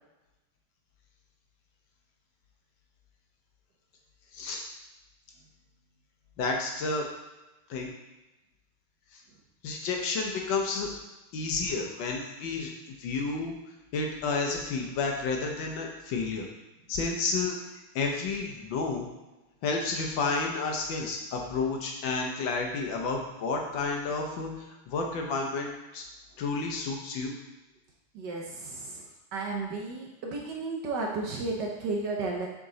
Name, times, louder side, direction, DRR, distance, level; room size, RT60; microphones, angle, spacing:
voice 1, 4.3-4.6 6.4-7.1 7.7-7.9 9.1-9.2 9.6-10.9 11.3-12.7 13.0-13.6 13.9-16.5 16.9-17.6 17.9-19.1 19.6-26.0 26.4-27.3, left 4 dB, 70° left, 1 dB, 1.4 m, -31 dB
voice 2, 28.1-29.0 29.3-32.5, right 3 dB, 65° right, -1 dB, 1.2 m, -33 dB
7.0 x 3.8 x 3.8 m, 1.1 s
omnidirectional pair, 2.4 m